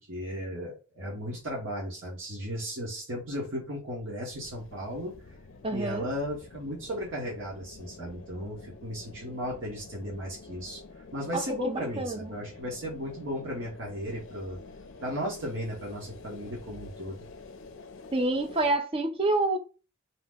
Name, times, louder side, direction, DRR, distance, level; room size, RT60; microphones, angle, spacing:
voice 1, 0.1-5.2 5.7-10.8 11.1-14.6 15.0-17.3, equal, 65° right, 1.0 m, -35 dB
sound 1, 4.3-18.8, left 3 dB, 65° left, 0.5 m, -48 dB
voice 2, 5.6-6.1 11.3-12.3 18.1-19.6, right 2 dB, 25° right, 0.4 m, -28 dB
2.8 x 2.0 x 3.4 m
head